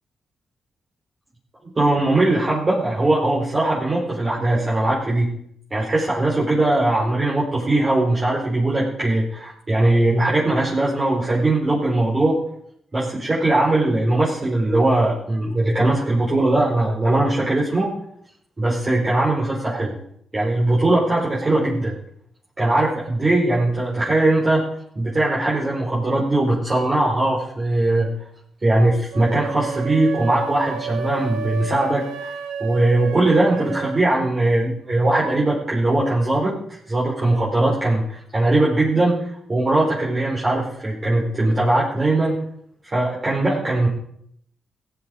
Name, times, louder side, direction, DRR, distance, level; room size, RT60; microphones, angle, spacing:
voice 1, 1.7-5.3 5.7-12.3 12.9-17.9 18.6-20.0 20.3-21.9 22.6-24.6 25.0-28.1 28.6-32.3 32.6-42.3 42.8-43.9, right 2 dB, 35° right, -6 dB, 4.4 m, -20 dB
sound 1, 29.1-34.1, right 6 dB, 85° right, 1.0 m, -31 dB
16.0 x 8.1 x 5.2 m, 0.69 s
supercardioid pair, 45°, 0 cm